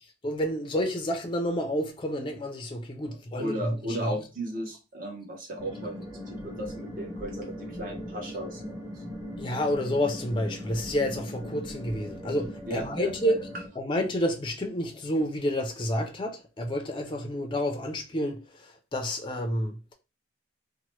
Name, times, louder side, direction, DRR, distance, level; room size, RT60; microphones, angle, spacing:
voice 1, 0.2-4.2 9.4-13.4 13.8-19.9, equal, 25° left, 0.4 m, -29 dB
voice 2, 3.4-6.0 6.3-9.0 12.7-13.3, right 1 dB, 45° right, 0.9 m, -35 dB
sound 1, 5.6-13.7, left 1 dB, 15° right, 1.1 m, -39 dB
2.8 x 2.1 x 3.1 m
head